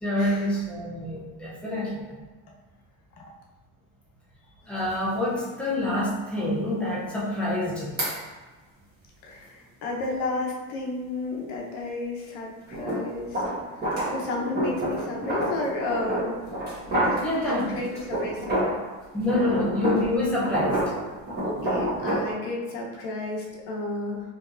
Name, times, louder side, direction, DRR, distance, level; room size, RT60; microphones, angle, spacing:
voice 1, 0.0-2.2 4.7-8.0 17.2-17.8 19.1-20.9, left 1 dB, 5° left, -7 dB, 0.5 m, -27 dB
sound 1, 4.8-4.9 5.4-5.5 8.0-8.2 12.7-18.9 19.2-22.3, right 1 dB, 25° right, 1.2 m, -28 dB
voice 2, 9.2-13.4 14.1-16.4 17.5-18.8 19.5-19.6 21.4-24.2, left 2 dB, 70° left, -2 dB, 0.9 m, -32 dB
4.6 x 2.9 x 2.5 m, 1.3 s
cardioid pair, 175°, 42 cm